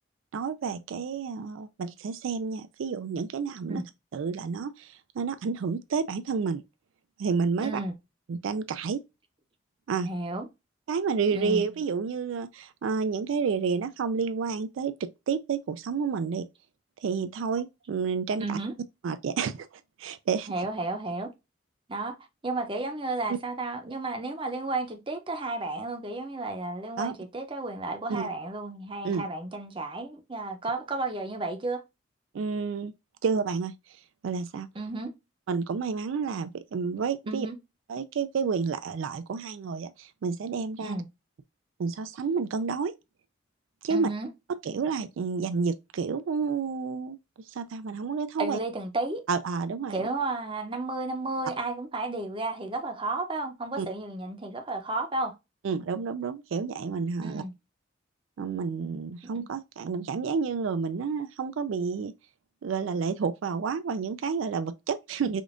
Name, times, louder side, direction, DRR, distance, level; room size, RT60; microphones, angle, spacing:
voice 1, 0.3-3.8 4.1-6.6 7.2-7.8 8.3-9.0 9.9-10.1 10.9-16.4 17.0-18.6 19.0-19.7 20.0-20.5 27.0-27.1 28.1-28.3 29.0-29.2 32.3-32.9 33.2-33.7 34.2-34.7 35.5-37.5 37.9-41.0 41.8-42.9 43.8-44.1 44.6-47.2 47.5-48.6 49.3-50.1 53.8-53.9 55.6-57.4 58.4-62.1 62.6-65.4, right 5 dB, 75° right, 0.4 m, -30 dB
voice 2, 7.6-7.9 10.0-10.5 11.3-11.6 18.4-18.7 20.5-21.3 21.9-22.2 22.4-31.8 34.7-35.1 37.3-37.6 40.8-41.0 43.9-44.3 48.4-49.2 49.9-55.3 57.2-57.5 59.3-59.4, right 2 dB, 25° right, 0.6 m, -32 dB
5.1 x 2.5 x 2.4 m
head